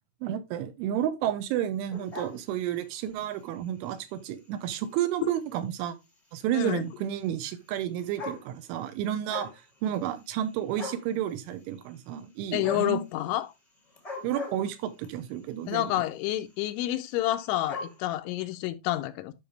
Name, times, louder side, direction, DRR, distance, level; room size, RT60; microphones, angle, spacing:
voice 1, 0.2-6.0 6.3-9.5 9.8-13.0 14.2-16.0, right 11 dB, 80° right, 3.2 m, -31 dB
sound 1, 1.9-3.1 3.7-3.9 4.7-4.8 5.0-5.1 5.4-5.5 6.7-6.8 7.7-7.8 8.0-8.8 9.1-9.6 9.9-10.5 10.8-11.1 12.6-13.0 13.9-15.1 15.9-16.2 16.5-16.6 16.8-16.9 17.1-18.0, left 3 dB, 30° left, 0.6 m, -39 dB
voice 2, 6.5-6.8 12.5-13.5 15.7-19.3, left 15 dB, 85° left, 2.9 m, -29 dB
12.0 x 5.6 x 3.3 m
omnidirectional pair, 5.6 m